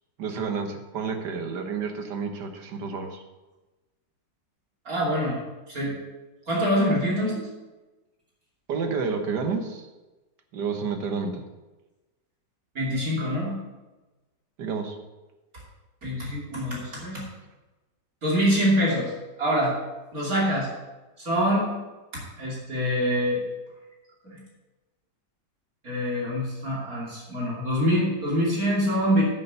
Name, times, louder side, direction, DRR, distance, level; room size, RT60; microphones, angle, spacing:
voice 1, 0.2-3.2 8.7-9.9 10.5-11.4 14.6-15.0, right 5 dB, 70° right, 5 dB, 1.8 m, -30 dB
voice 2, 4.8-5.4 5.7-5.9 6.5-7.5 12.7-13.5 16.0-17.2 18.2-19.1 19.4-19.8 20.1-20.7 21.2-21.7 22.1-23.4 24.2-24.4 25.8-29.2, equal, 50° right, -5 dB, 3.1 m, -25 dB
9.3 x 6.9 x 6.9 m, 1.1 s
omnidirectional pair, 2.0 m